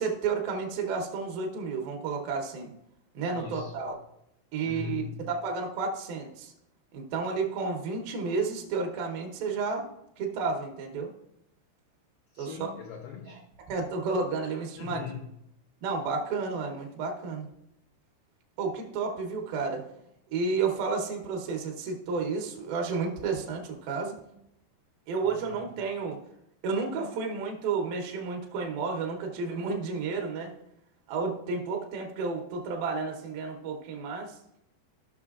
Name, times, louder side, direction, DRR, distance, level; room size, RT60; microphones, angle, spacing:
voice 1, 0.0-2.7 3.1-4.0 4.5-6.5 6.9-9.9 10.2-11.1 12.4-12.6 13.7-15.0 15.8-17.5 18.6-19.8 20.3-24.2 25.1-26.2 26.6-30.5 31.1-34.4, right 4 dB, 70° right, 2 dB, 2.5 m, -31 dB
voice 2, 3.3-3.7 4.6-5.2 12.3-13.4 14.8-15.3 25.2-25.6, left 8 dB, 80° left, 0 dB, 2.2 m, -40 dB
14.5 x 6.2 x 2.4 m, 0.80 s
omnidirectional pair, 5.1 m